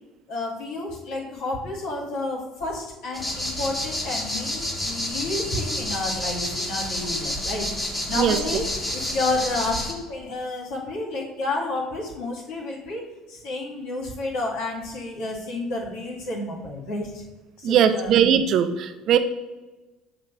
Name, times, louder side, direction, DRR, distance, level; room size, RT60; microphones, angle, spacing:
voice 1, 0.3-7.7 8.1-17.2 17.6-18.2, left 2 dB, 75° left, -3 dB, 2.3 m, -30 dB
sound 1, 3.1-9.9, left 1 dB, 15° left, 2.0 m, -29 dB
voice 2, 17.6-19.2, right 8 dB, 60° right, 9 dB, 0.6 m, -19 dB
7.5 x 3.1 x 6.2 m, 1.1 s
hypercardioid pair, 65°, 0 cm